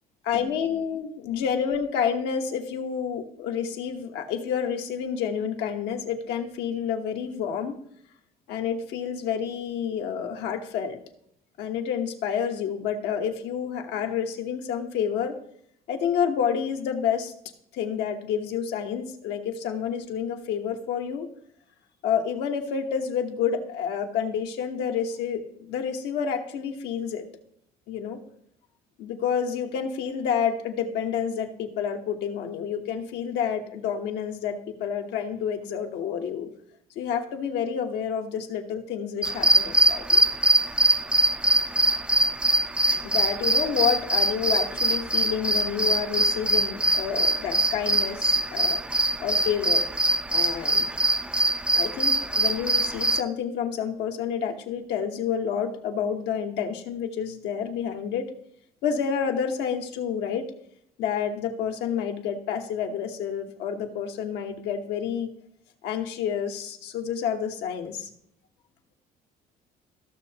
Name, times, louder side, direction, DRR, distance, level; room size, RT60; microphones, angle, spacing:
voice 1, 0.3-7.7 8.5-11.0 11.6-15.3 15.9-17.3 17.7-21.3 22.0-27.3 27.9-28.2 29.0-36.5 36.9-40.2 43.0-48.8 49.2-49.9 50.3-50.9 51.7-58.3 58.8-60.5 61.0-65.3 65.8-68.1, left 7 dB, 80° left, 3 dB, 1.2 m, -29 dB
sound 1, 39.2-53.2, right 1 dB, 5° right, 0.4 m, -23 dB
14.5 x 6.4 x 2.9 m, 0.70 s
cardioid pair, 110°, 17 cm